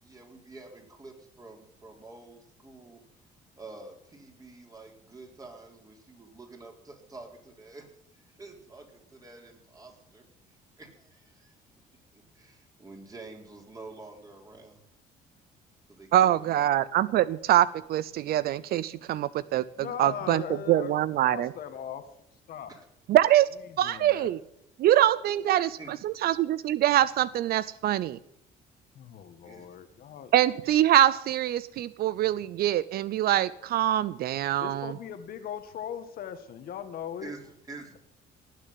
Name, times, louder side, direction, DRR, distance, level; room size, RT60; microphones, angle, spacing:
voice 1, 0.0-3.0 3.6-7.9 8.1-10.2 10.8-11.5 12.1-14.8 15.9-16.6 22.7-22.8 25.5-25.9 29.4-29.6 37.2-38.0, right 3 dB, 20° right, 1 dB, 4.3 m, -48 dB
voice 2, 16.1-19.6 20.0-20.4 20.7-21.5 23.1-23.5 23.8-24.4 24.8-28.2 30.3-34.9, right 12 dB, 65° right, 18 dB, 0.6 m, -24 dB
voice 3, 19.8-20.9 21.3-22.0 22.5-22.8 23.7-24.3 28.9-30.3 34.6-37.3, left 8 dB, 60° left, 9 dB, 1.7 m, -39 dB
19.0 x 6.8 x 9.5 m, 0.76 s
cardioid pair, 110°, 17 cm